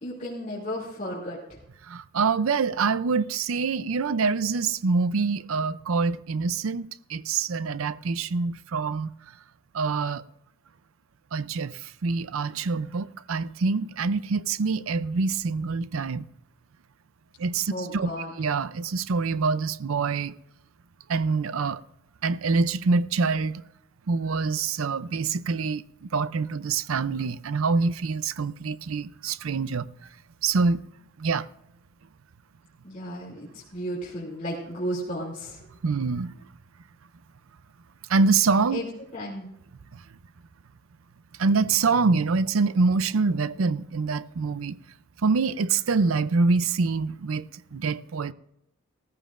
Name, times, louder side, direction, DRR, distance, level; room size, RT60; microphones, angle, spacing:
voice 1, 0.0-1.6 17.7-18.3 32.8-35.7 38.7-38.8 39.1-39.5, equal, 35° left, 2.6 m, -34 dB
voice 2, 1.8-9.1 9.7-10.2 11.3-16.3 17.4-18.1 18.4-20.4 21.1-21.8 22.2-23.6 24.1-29.9 30.4-30.9 31.2-31.5 35.8-36.3 38.1-38.8 39.9-40.0 41.4-44.8 45.2-48.3, right 4 dB, 80° right, 0.5 m, -25 dB
17.0 x 14.5 x 2.5 m
head